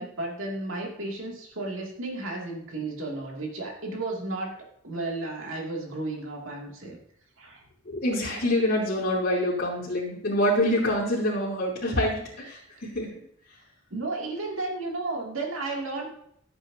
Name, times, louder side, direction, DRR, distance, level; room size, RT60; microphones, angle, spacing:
voice 1, 0.0-4.6 4.8-7.0 7.4-7.6 13.9-16.2, right 2 dB, 70° right, -1 dB, 2.5 m, -33 dB
voice 2, 7.9-13.1, left 1 dB, 50° left, -11 dB, 3.6 m, -26 dB
14.5 x 7.9 x 2.8 m, 0.69 s
head